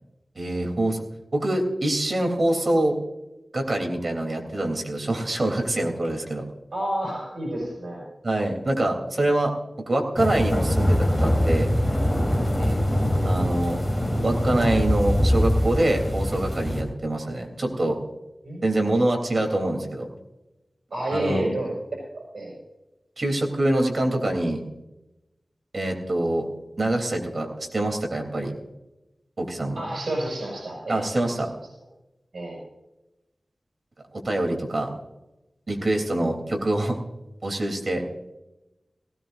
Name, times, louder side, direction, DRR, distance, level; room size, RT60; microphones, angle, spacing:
voice 1, 0.4-1.0 1.3-3.0 3.5-6.4 8.2-9.5 9.9-11.7 13.2-13.8 14.2-18.0 18.6-20.1 21.1-21.4 23.2-24.6 25.7-26.4 26.8-27.5 27.7-28.5 29.4-29.8 30.9-31.5 34.1-34.9 35.7-37.0 37.4-38.0, right 1 dB, 55° right, 2 dB, 3.4 m, -25 dB
voice 2, 6.7-8.0 12.6-12.8 18.4-18.7 20.9-22.0 22.3-22.5 29.8-31.0 32.3-32.6, right 1 dB, 85° right, -3 dB, 6.0 m, -29 dB
sound 1, 10.2-16.8, equal, 10° left, 3.7 m, -23 dB
18.5 x 17.0 x 2.6 m, 0.98 s
wide cardioid pair, 85°, 0 cm